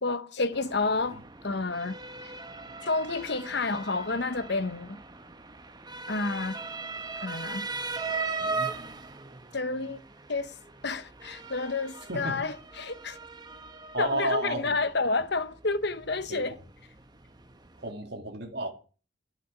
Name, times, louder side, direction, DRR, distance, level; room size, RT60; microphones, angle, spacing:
voice 1, 0.0-2.0 2.8-5.0 6.1-6.6 7.2-7.7 9.5-10.0 10.3-10.5 10.8-13.2 14.0-16.6, left 3 dB, 55° left, 1.0 m, -30 dB
Motor vehicle (road) / Siren, 0.5-17.9, right 3 dB, 20° right, 1.1 m, -39 dB
voice 2, 12.1-12.4 13.9-14.8 16.3-16.6 17.8-18.7, right 2 dB, 55° right, 2.4 m, -32 dB
12.0 x 7.7 x 9.4 m
head